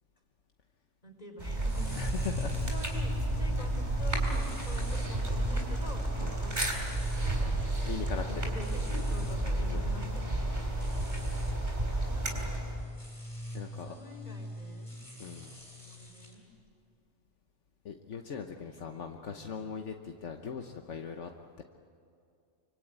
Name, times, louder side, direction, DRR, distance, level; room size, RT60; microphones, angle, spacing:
voice 1, 1.0-1.9 2.5-6.6 7.4-7.6 8.3-10.4 11.9-12.6 13.6-14.9 15.7-16.4 18.6-19.7, left 1 dB, 35° left, 2 dB, 4.5 m, -47 dB
sound 1, 1.4-12.8, right 2 dB, 40° right, 4.1 m, -32 dB
sound 2, 1.6-16.3, left 1 dB, 15° left, 6.3 m, -41 dB
voice 2, 1.9-2.5 6.2-6.3 7.8-8.5 9.7-9.8 13.5-14.0 15.2-15.5 17.8-21.3 21.6-21.7, left 6 dB, 75° left, 4 dB, 1.4 m, -40 dB
25.5 x 25.0 x 8.9 m, 2.4 s
omnidirectional pair, 1.2 m